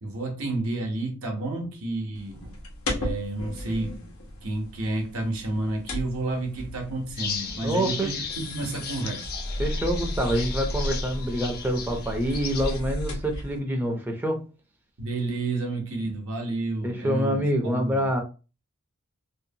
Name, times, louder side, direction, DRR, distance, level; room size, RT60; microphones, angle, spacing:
voice 1, 0.0-2.6 3.0-3.9 4.4-9.3 15.0-18.1, right 2 dB, 70° right, 0.8 m, -30 dB
sound 1, 2.1-13.6, left 1 dB, 85° left, 0.8 m, -35 dB
sound 2, 7.2-12.8, left 6 dB, 50° left, 0.5 m, -36 dB
voice 2, 7.6-8.1 9.6-14.4 16.8-18.2, equal, 10° right, 0.4 m, -26 dB
2.7 x 2.1 x 2.6 m
head